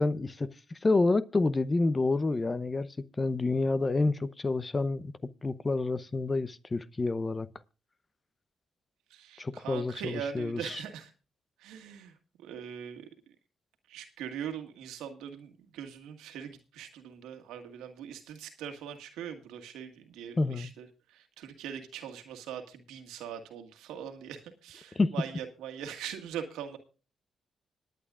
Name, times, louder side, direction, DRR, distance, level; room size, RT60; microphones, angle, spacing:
voice 1, 0.0-5.1 5.4-7.5 9.4-10.8 20.4-20.7 25.0-25.1, left 3 dB, 30° left, 0.8 m, -28 dB
voice 2, 9.1-11.1 11.6-13.1 13.9-26.8, right 8 dB, 85° right, 1.8 m, -41 dB
25.5 x 9.3 x 2.4 m
supercardioid pair, 60°, 0 cm